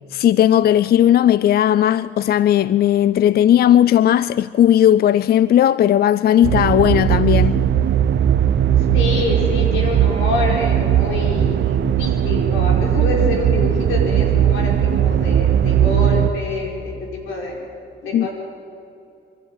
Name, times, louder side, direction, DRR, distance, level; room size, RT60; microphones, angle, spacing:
voice 1, 0.1-7.6 18.1-18.3, left 11 dB, 50° left, 0.4 m, -16 dB
sound 1, 6.4-16.3, right 10 dB, 65° right, 0.9 m, -18 dB
voice 2, 8.9-17.6 18.0-18.3, left 2 dB, 85° left, 5.3 m, -26 dB
24.5 x 12.5 x 9.0 m
cardioid pair, 90°, 20 cm